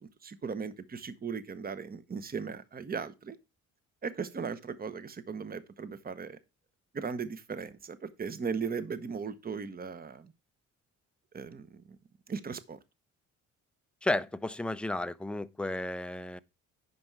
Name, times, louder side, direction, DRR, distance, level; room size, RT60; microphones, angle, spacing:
voice 1, 0.0-3.4 4.0-6.4 6.9-10.3 11.3-11.8 12.3-12.8, right 5 dB, 30° right, 0.9 m, -37 dB
voice 2, 14.0-16.4, left 1 dB, 5° left, 0.5 m, -33 dB
9.5 x 5.4 x 4.6 m
cardioid pair, 90°, 30 cm